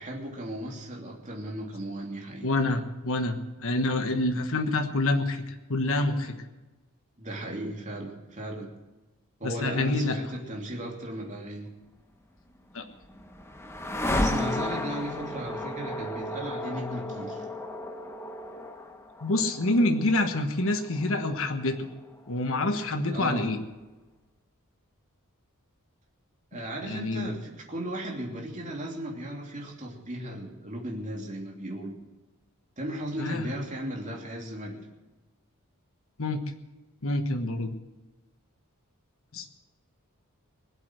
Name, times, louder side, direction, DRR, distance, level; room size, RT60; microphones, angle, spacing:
voice 1, 0.0-2.5 7.2-8.7 9.4-11.7 14.1-17.4 23.1-23.5 26.5-32.0 32.8-34.9, right 1 dB, 35° right, -1 dB, 3.0 m, -36 dB
voice 2, 2.4-6.4 9.4-10.2 12.7-12.8 19.2-21.9 22.3-23.6 26.5-26.6 26.9-27.3 33.2-33.5 36.2-36.4 37.0-37.7 39.3-39.5, left 2 dB, 65° left, 6 dB, 1.3 m, -27 dB
sound 1, 12.5-22.6, left 1 dB, 10° left, 1.0 m, -34 dB
21.0 x 8.1 x 7.7 m, 1.1 s
head